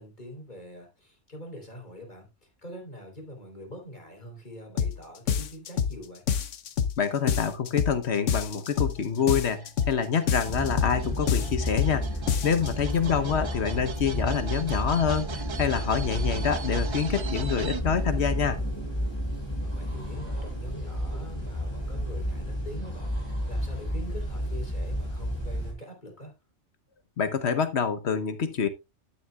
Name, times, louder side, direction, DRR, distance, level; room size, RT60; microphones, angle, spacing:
voice 1, 0.0-6.2 13.0-13.5 19.6-26.3, equal, 40° left, 3.9 m, -44 dB
sound 1, 4.8-5.0 5.3-6.0 6.3-7.0 7.3-8.0 8.3-9.0 9.3-10.0 10.3-11.0 11.3-12.0 12.3-12.7, left 7 dB, 85° left, 1.2 m, -27 dB
voice 2, 7.0-12.1 12.4-18.6 27.2-28.7, left 7 dB, 65° left, 1.2 m, -26 dB
sound 2, 8.7-17.8, right 5 dB, 50° right, 0.3 m, -40 dB
sound 3, 10.5-25.7, equal, 20° left, 4.7 m, -31 dB
12.0 x 9.4 x 2.3 m
omnidirectional pair, 1.2 m